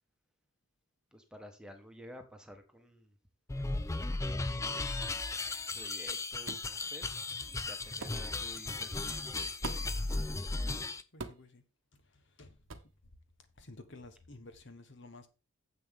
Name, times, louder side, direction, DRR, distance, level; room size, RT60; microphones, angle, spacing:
voice 1, 1.1-3.1 4.2-5.1 5.7-9.2, equal, 5° right, 1.4 m, -52 dB
sound 1, 3.5-11.0, left 3 dB, 15° left, 0.4 m, -36 dB
sound 2, 6.5-6.7 8.0-8.2 9.6-10.0 11.2-11.5 12.7-12.9, right 3 dB, 55° right, 1.0 m, -42 dB
voice 2, 10.4-10.7 11.1-11.6 11.9-12.6 13.6-15.3, left 2 dB, 55° left, 1.2 m, -53 dB
9.7 x 7.8 x 3.6 m
head